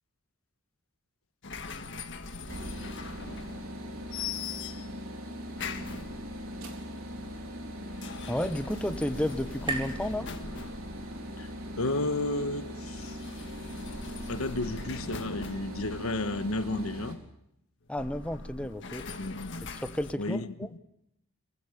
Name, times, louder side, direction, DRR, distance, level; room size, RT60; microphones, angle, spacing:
sound 1, 1.4-3.8 4.1-5.0 5.6-6.5 7.8-11.4 12.9-16.8 17.9-20.1, left 4 dB, 60° left, 1.7 m, -42 dB
sound 2, 2.5-17.2, equal, 80° right, 4.0 m, -40 dB
sound 3, 7.3-11.1, right 3 dB, 25° right, 3.6 m, -42 dB
voice 1, 8.3-10.3 17.9-19.0 19.7-20.7, left 1 dB, 5° left, 0.9 m, -32 dB
voice 2, 11.8-13.1 14.3-17.2 19.2-19.6 20.2-20.5, left 2 dB, 85° left, 1.3 m, -32 dB
24.0 x 15.5 x 8.4 m
head